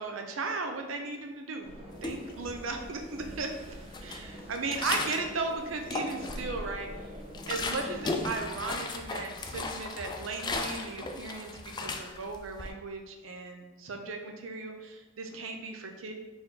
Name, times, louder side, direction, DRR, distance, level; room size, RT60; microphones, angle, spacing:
voice 1, 0.0-1.7 2.0-3.5 4.5-6.9 7.5-16.1, right 3 dB, 75° right, 4 dB, 0.6 m, -36 dB
sound 1, 1.6-8.3, equal, 30° right, 0.6 m, -45 dB
sound 2, 2.0-2.8 3.1-5.4 5.7-6.6 7.0-12.7, left 3 dB, 20° left, 0.3 m, -36 dB
4.3 x 2.9 x 3.7 m, 1.2 s
head